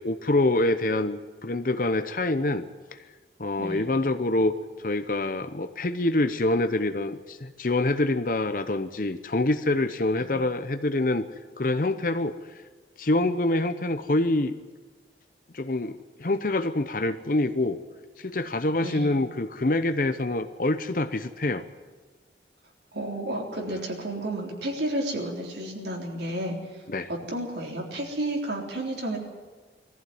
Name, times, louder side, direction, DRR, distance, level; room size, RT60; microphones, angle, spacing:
voice 1, 0.0-2.6 2.9-3.0 3.4-4.5 4.8-11.3 11.6-12.4 13.0-14.6 15.5-17.8 18.2-21.6 26.9-27.1, left 2 dB, 50° left, 10 dB, 0.8 m, -26 dB
voice 2, 22.9-26.6 27.1-29.2, right 1 dB, 80° right, 0 dB, 3.7 m, -31 dB
20.0 x 14.5 x 9.4 m, 1.3 s
head